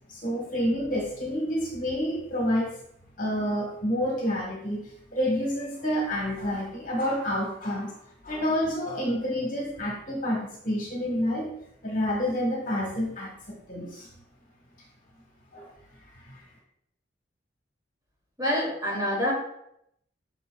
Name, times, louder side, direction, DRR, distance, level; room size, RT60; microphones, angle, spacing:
voice 1, 0.1-2.7 3.2-7.9 8.2-11.5 11.8-14.1 15.5-15.7 16.2-16.4, equal, 40° left, -1 dB, 1.3 m, -29 dB
voice 2, 18.4-19.3, left 1 dB, 20° right, -5 dB, 2.5 m, -26 dB
7.9 x 5.6 x 2.3 m, 0.75 s
head